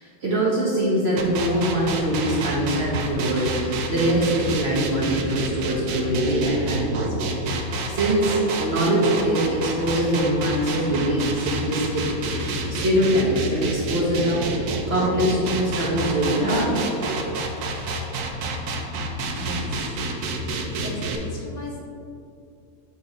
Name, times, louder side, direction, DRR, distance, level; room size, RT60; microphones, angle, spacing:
voice 1, 0.0-12.4 12.7-14.6 14.9-16.8, right 1 dB, 45° right, -5 dB, 0.9 m, -23 dB
sound 1, 1.2-21.2, right 2 dB, 70° right, 1.1 m, -28 dB
voice 2, 19.3-20.0 20.8-21.8, left 1 dB, 65° left, 0 dB, 1.1 m, -36 dB
7.0 x 3.0 x 4.9 m, 2.4 s
omnidirectional pair, 1.9 m